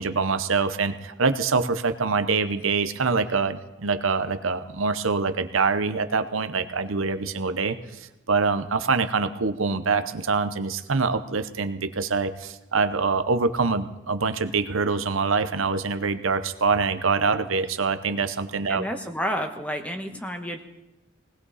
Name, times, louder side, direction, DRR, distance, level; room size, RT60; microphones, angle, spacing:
voice 1, 0.0-18.8, right 4 dB, 80° right, 10 dB, 0.9 m, -25 dB
voice 2, 18.7-20.6, equal, 5° left, 5 dB, 1.2 m, -30 dB
19.5 x 18.0 x 4.2 m, 0.96 s
head